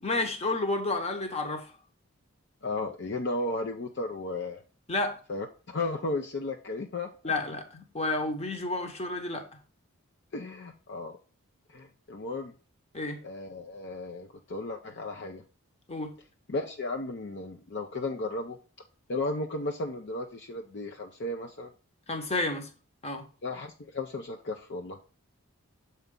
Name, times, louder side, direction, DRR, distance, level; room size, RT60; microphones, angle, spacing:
voice 1, 0.0-1.7 4.9-5.2 7.2-9.4 12.9-13.2 15.9-16.1 22.1-22.7 23.0-23.2, left 2 dB, 30° left, 1.0 m, -30 dB
voice 2, 2.6-4.6 5.3-7.3 10.3-11.2 11.7-12.5 13.2-15.4 16.5-18.6 19.1-21.7 23.4-25.0, left 2 dB, 50° left, 0.6 m, -34 dB
7.0 x 4.5 x 3.7 m
head